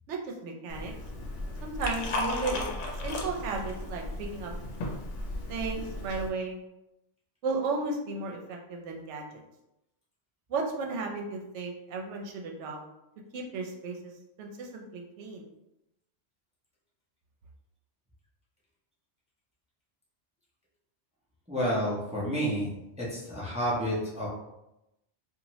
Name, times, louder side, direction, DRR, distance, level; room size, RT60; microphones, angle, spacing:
voice 1, 0.1-0.9 1.6-2.7 3.0-4.5 5.5-6.6 7.4-9.3 10.5-12.8 13.3-14.1 14.4-15.5, right 3 dB, 75° right, 1 dB, 0.9 m, -34 dB
Liquid, 0.7-6.3, left 2 dB, 80° left, 0.9 m, -35 dB
voice 2, 21.5-22.7 23.0-24.3, equal, 10° right, -6 dB, 0.5 m, -30 dB
2.7 x 2.4 x 3.0 m, 0.89 s
omnidirectional pair, 1.2 m